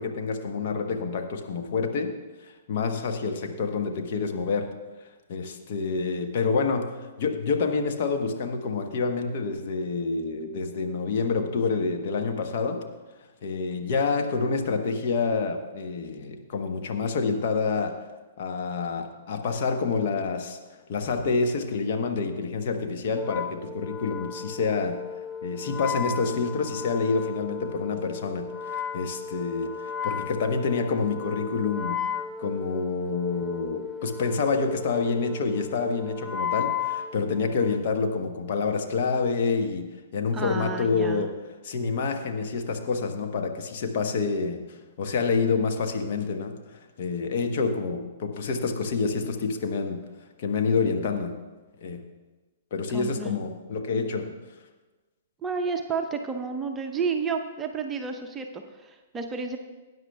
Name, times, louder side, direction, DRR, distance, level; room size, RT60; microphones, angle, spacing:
voice 1, 0.0-2.1 2.4-4.7 5.3-12.8 13.4-18.0 18.4-20.6 20.9-25.0 25.4-32.0 32.4-41.4 41.6-50.0 50.4-51.3 51.8-52.0 52.7-54.3, left 4 dB, 50° left, 4 dB, 1.0 m, -28 dB
Wind instrument woodwind instrument, 23.1-37.9, left 7 dB, 10° left, 0.4 m, -35 dB
voice 2, 40.3-41.3 52.9-53.4 55.4-59.6, right 5 dB, 15° right, 4 dB, 0.7 m, -31 dB
18.5 x 9.3 x 2.3 m, 1.2 s
figure-of-eight pair, 115°, 0 cm